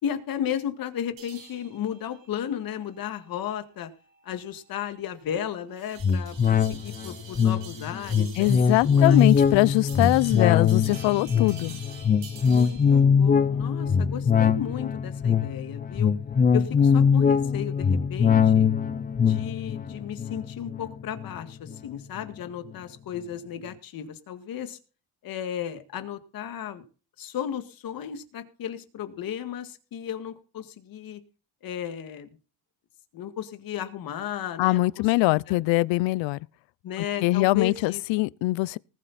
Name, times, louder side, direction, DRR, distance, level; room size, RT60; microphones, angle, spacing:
voice 1, 0.0-3.9 4.2-9.3 12.4-16.1 16.5-18.7 19.2-24.8 25.2-26.8 27.2-31.2 31.6-32.4 33.1-35.6 36.8-38.0, left 9 dB, 50° left, 2.0 m, -34 dB
sound 1, 1.2-13.0, right 6 dB, 85° right, 7.7 m, -48 dB
sound 2, 6.0-21.8 22.2-22.3, left 6 dB, 20° left, 0.6 m, -22 dB
voice 2, 8.4-11.8 34.6-36.4 37.0-38.8, left 21 dB, 85° left, 0.6 m, -23 dB
20.0 x 7.7 x 4.2 m
cardioid pair, 160°, 44 cm